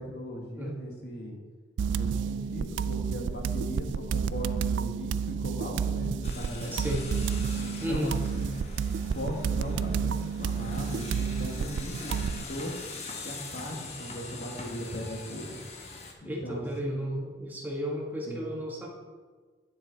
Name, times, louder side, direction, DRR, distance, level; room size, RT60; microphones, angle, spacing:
voice 1, 0.0-1.4 1.9-6.8 7.5-8.6 9.1-12.7 13.2-15.6 16.2-17.1 18.3-18.5, equal, 65° left, 1 dB, 1.7 m, -38 dB
sound 1, 1.8-12.4, right 6 dB, 85° right, 0.3 m, -30 dB
sound 2, 6.2-16.1, left 3 dB, 35° left, 1.1 m, -43 dB
voice 2, 6.7-7.1 7.8-8.2 16.2-18.9, equal, 10° right, -2 dB, 1.5 m, -33 dB
9.5 x 7.4 x 4.0 m, 1.4 s
head